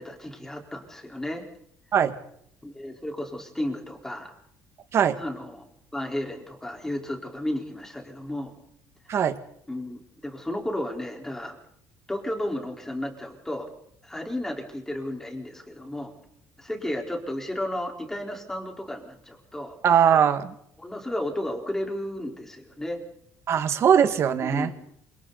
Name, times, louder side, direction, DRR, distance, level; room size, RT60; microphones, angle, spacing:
voice 1, 0.0-1.4 2.6-4.3 5.2-8.5 9.1-9.2 9.7-11.6 12.1-13.7 14.0-16.1 16.6-19.7 20.8-23.0 24.4-24.9, left 1 dB, 5° left, 1 dB, 4.4 m, -33 dB
voice 2, 19.8-20.5 23.5-24.7, right 8 dB, 40° right, 9 dB, 1.9 m, -20 dB
28.0 x 27.0 x 4.2 m, 0.71 s
cardioid pair, 160°, 7 cm